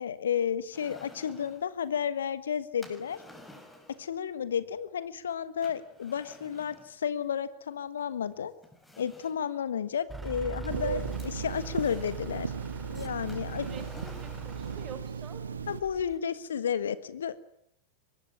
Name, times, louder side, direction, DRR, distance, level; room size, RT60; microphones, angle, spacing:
voice 1, 0.0-3.2 4.0-8.5 9.0-12.5 12.9-13.7 15.7-17.4, left 8 dB, 65° left, 15 dB, 1.4 m, -32 dB
sound 1, 0.7-1.7 2.8-4.1 5.6-6.9 8.0-8.1 8.6-9.5 10.6-12.3 13.3-14.6, left 1 dB, 5° left, 5.7 m, -52 dB
Truck / Idling, 10.1-16.2, right 5 dB, 10° right, 2.6 m, -42 dB
Telephone, 10.7-15.8, right 6 dB, 70° right, 1.3 m, -37 dB
voice 2, 13.5-15.4, right 7 dB, 30° right, 10 dB, 4.6 m, -47 dB
24.0 x 21.0 x 9.9 m, 0.69 s
figure-of-eight pair, 90°, 0 cm